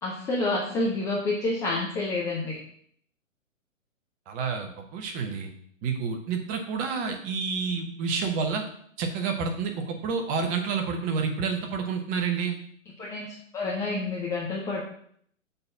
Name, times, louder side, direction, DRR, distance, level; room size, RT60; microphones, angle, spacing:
voice 1, 0.0-2.6 13.0-13.3 13.5-14.8, left 2 dB, 5° left, -5 dB, 0.6 m, -28 dB
voice 2, 4.3-5.5 5.8-8.6 9.0-12.6, right 5 dB, 20° right, 3 dB, 0.9 m, -29 dB
6.6 x 4.2 x 6.0 m, 0.62 s
figure-of-eight pair, 125°, 40 cm